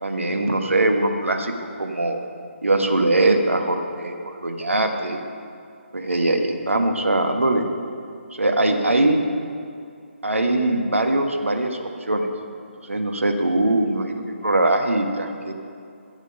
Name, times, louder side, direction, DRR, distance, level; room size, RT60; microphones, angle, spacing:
voice 1, 0.0-1.5 1.8-2.2 2.6-5.2 5.9-7.7 8.3-9.2 10.2-12.3 12.8-15.5, right 2 dB, 75° right, 4 dB, 1.3 m, -21 dB
15.0 x 8.0 x 5.5 m, 2.4 s
figure-of-eight pair, 145°, 7 cm